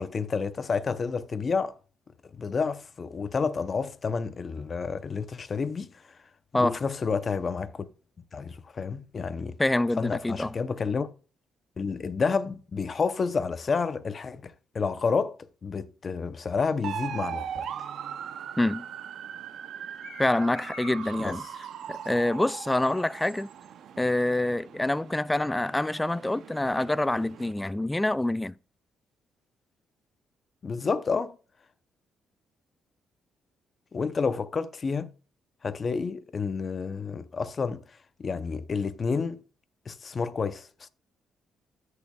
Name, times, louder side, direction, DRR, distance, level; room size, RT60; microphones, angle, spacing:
voice 1, 0.0-1.7 2.3-5.9 6.5-7.9 8.3-9.6 10.0-11.1 11.8-17.6 21.2-21.4 30.6-31.3 33.9-35.1 35.6-37.8 38.2-39.4 39.9-40.9, left 5 dB, 40° left, 0.7 m, -30 dB
voice 2, 9.6-10.5 18.6-18.9 20.2-21.4 21.9-23.5 24.0-28.5, left 1 dB, 10° left, 0.3 m, -26 dB
sound 1, 16.8-27.5, right 8 dB, 70° right, 0.7 m, -40 dB
sound 2, 19.7-23.4, left 8 dB, 90° left, 2.0 m, -51 dB
13.0 x 6.6 x 2.4 m
cardioid pair, 90°, 0 cm